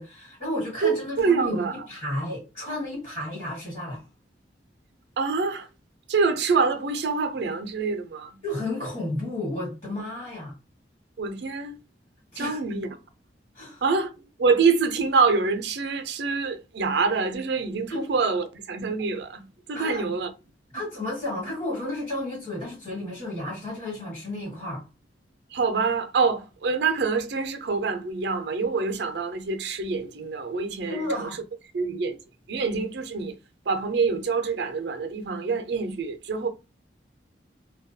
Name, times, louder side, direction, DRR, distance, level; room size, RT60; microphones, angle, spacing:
voice 1, 0.0-4.0 8.4-10.5 12.3-12.6 13.5-13.8 17.9-18.1 19.7-20.1 20.7-24.8 30.9-31.4, left 1 dB, 35° left, 1.2 m, -32 dB
voice 2, 0.8-1.7 5.2-5.7 6.1-8.3 11.2-11.8 12.4-12.9 13.8-14.1 14.4-19.4 19.7-20.3 25.5-31.3 31.7-32.2 32.5-33.3 33.7-36.5, right 4 dB, 70° right, 0.4 m, -25 dB
2.2 x 2.2 x 2.6 m
head